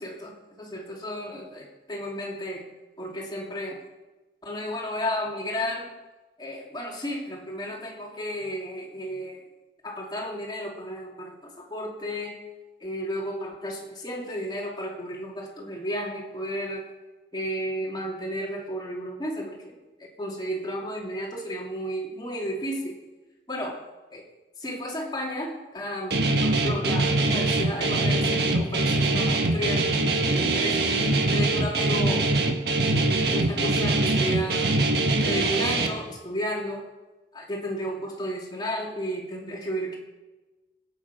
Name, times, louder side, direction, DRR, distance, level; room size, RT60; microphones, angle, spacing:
voice 1, 0.0-2.7 3.0-3.8 4.4-5.9 6.4-9.4 9.8-12.4 12.8-16.8 17.3-23.0 23.5-23.8 24.1-24.2 24.6-30.0 30.3-30.9 31.3-32.3 33.3-34.7 35.2-36.8 37.3-40.0, equal, 25° left, -1 dB, 2.7 m, -33 dB
Guitar, 26.1-35.9, right 2 dB, 60° right, 1.6 m, -23 dB
18.5 x 8.8 x 5.9 m, 1.1 s
head